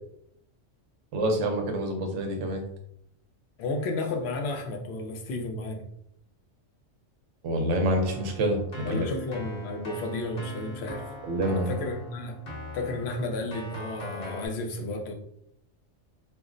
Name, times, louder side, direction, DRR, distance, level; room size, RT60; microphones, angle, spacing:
voice 1, 1.1-2.6 7.4-9.1 11.2-11.7, right 1 dB, 70° right, 3 dB, 0.9 m, -27 dB
voice 2, 3.6-5.9 8.8-11.1 11.5-12.4 12.7-15.1, left 2 dB, 65° left, 3 dB, 0.8 m, -32 dB
Keyboard (musical), 7.9-14.5, equal, 40° left, 1.0 m, -41 dB
2.5 x 2.0 x 3.6 m, 0.72 s
omnidirectional pair, 1.3 m